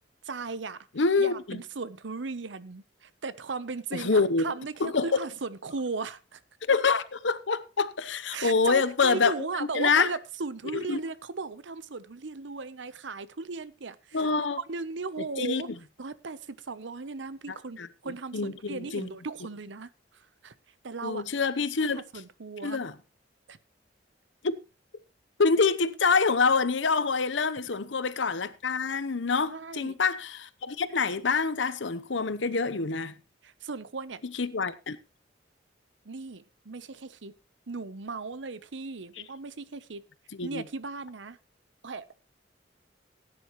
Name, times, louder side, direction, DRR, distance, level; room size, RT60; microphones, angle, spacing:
voice 1, 0.2-0.9 1.2-6.4 8.3-15.7 16.0-20.5 20.8-21.2 21.8-22.9 23.5-23.6 29.5-30.0 33.4-34.2 36.0-37.3 37.7-40.0 40.4-41.4 41.8-42.2, right 4 dB, 80° right, 0.8 m, -37 dB
voice 2, 1.0-1.6 3.9-4.5 4.8-5.1 6.7-9.3 9.6-10.1 10.7-11.0 14.1-14.6 15.4-15.6 17.8-17.9 18.3-19.1 21.0-22.0 22.6-22.9 24.4-24.6 25.4-33.1 34.4-35.0 40.3-40.6, left 4 dB, 85° left, 0.9 m, -26 dB
17.0 x 9.8 x 3.1 m
head